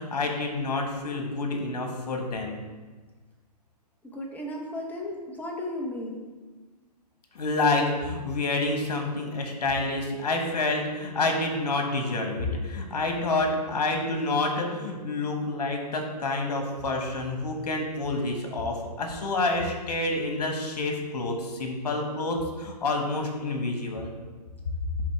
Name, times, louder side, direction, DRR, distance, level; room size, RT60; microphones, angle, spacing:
voice 1, 0.0-2.6 7.3-24.1, left 2 dB, 65° left, 3 dB, 1.4 m, -28 dB
voice 2, 4.0-6.3, left 1 dB, 5° left, -1 dB, 0.9 m, -35 dB
9.6 x 3.7 x 3.4 m, 1.4 s
figure-of-eight pair, 120°, 21 cm